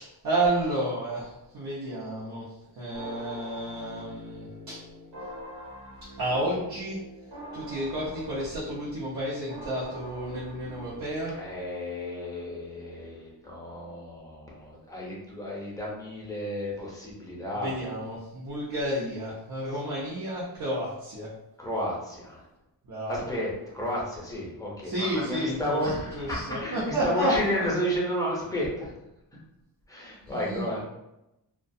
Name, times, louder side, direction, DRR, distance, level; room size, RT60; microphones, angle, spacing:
voice 1, 0.0-2.5 2.7-4.8 6.2-7.0 7.5-11.4 17.5-21.3 22.8-23.2 24.8-27.6 30.3-30.7, right 1 dB, 60° right, -8 dB, 0.7 m, -31 dB
sound 1, 2.9-11.7, equal, 80° right, 1.1 m, -44 dB
voice 2, 11.3-17.8 21.6-22.4 23.1-28.9 29.9-30.8, equal, 10° left, -5 dB, 0.6 m, -32 dB
2.3 x 2.2 x 2.6 m, 0.91 s
wide cardioid pair, 140°, 41 cm